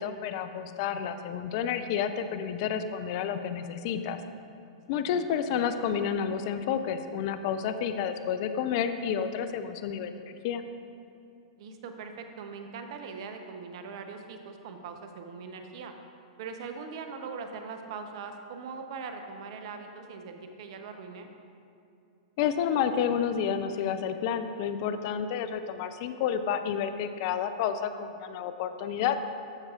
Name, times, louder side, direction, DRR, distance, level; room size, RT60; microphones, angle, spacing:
voice 1, 0.0-4.2 4.9-10.6 22.4-29.2, left 8 dB, 50° left, 10 dB, 0.5 m, -30 dB
voice 2, 4.9-5.6 11.6-15.9 16.4-21.3, right 5 dB, 55° right, 6 dB, 0.8 m, -41 dB
14.0 x 6.2 x 2.5 m, 2.6 s
hypercardioid pair, 105°, 3 cm